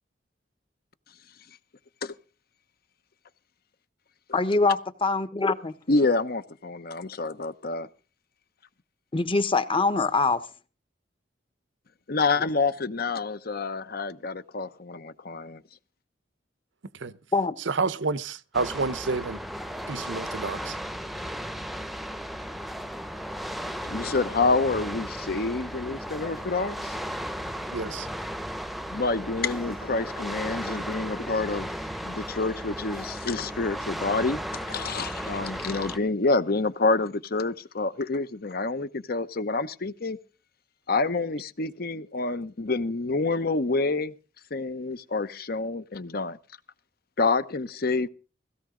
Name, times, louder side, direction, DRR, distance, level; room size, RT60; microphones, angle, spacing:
voice 1, 4.3-5.8 9.1-10.4 17.3-17.5, left 3 dB, 30° left, 1.1 m, -24 dB
voice 2, 5.9-7.9 12.1-15.6 23.8-27.0 28.9-40.2 40.9-44.1 44.5-46.4 47.2-48.1, left 3 dB, 55° left, 0.9 m, -28 dB
voice 3, 17.7-19.4 19.9-20.8 27.7-28.1, right 4 dB, 90° right, 0.8 m, -29 dB
sound 1, 18.5-36.0, equal, ahead, 0.8 m, -35 dB
17.0 x 16.5 x 3.8 m
head